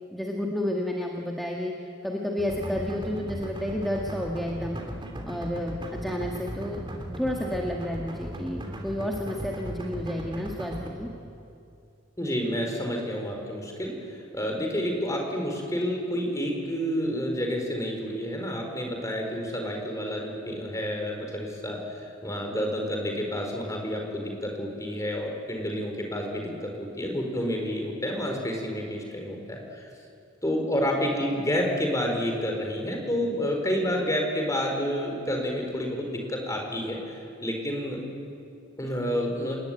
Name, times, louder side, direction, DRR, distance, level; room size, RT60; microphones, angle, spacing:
voice 1, 0.1-1.7 2.0-4.8 5.2-6.8 7.2-11.1 26.3-26.6, left 1 dB, ahead, -1 dB, 1.9 m, -31 dB
sound 1, 2.4-10.9, right 1 dB, 25° right, 3.1 m, -37 dB
voice 2, 12.2-29.9 30.4-38.0 38.8-39.6, equal, 15° left, 1 dB, 4.6 m, -29 dB
28.5 x 20.0 x 9.3 m, 2.5 s
head